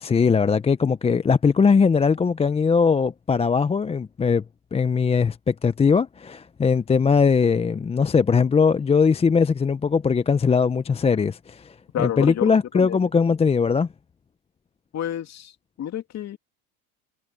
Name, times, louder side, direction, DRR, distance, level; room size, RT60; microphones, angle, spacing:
voice 1, 0.0-4.4 4.7-13.9, left 5 dB, 15° left, 0.7 m, -20 dB
voice 2, 11.9-13.0 14.9-16.4, left 10 dB, 40° left, 2.8 m, -30 dB
supercardioid pair, 100°, 43 cm